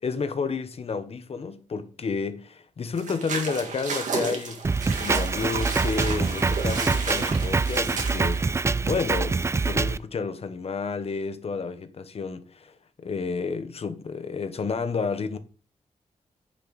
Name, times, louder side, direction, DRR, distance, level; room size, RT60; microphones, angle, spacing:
voice 1, 0.0-4.6 5.0-8.5 8.8-12.8 13.0-15.4, left 5 dB, 55° left, 1.0 m, -31 dB
sound 1, 3.0-8.6, right 4 dB, 80° right, 2.0 m, -33 dB
Drum kit, 4.6-10.0, right 4 dB, 20° right, 0.3 m, -25 dB
9.8 x 5.8 x 4.1 m
cardioid pair, 95°, 13 cm